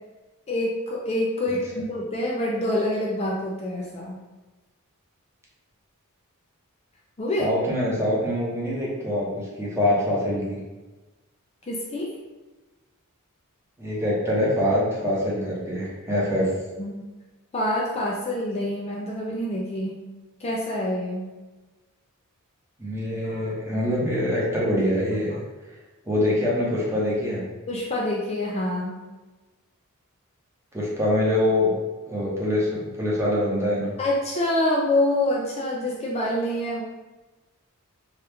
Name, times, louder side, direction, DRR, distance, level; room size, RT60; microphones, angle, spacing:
voice 1, 0.5-4.1 7.2-7.5 11.7-12.1 16.8-17.0 17.5-20.0 20.4-21.2 23.2-23.4 27.7-29.0 34.0-36.8, left 1 dB, 30° left, -3 dB, 0.4 m, -26 dB
voice 2, 7.4-10.6 13.8-16.5 22.8-25.3 26.1-27.4 30.7-31.7 32.1-33.9, left 1 dB, 10° right, -6 dB, 0.8 m, -24 dB
3.0 x 2.3 x 3.4 m, 1.2 s
head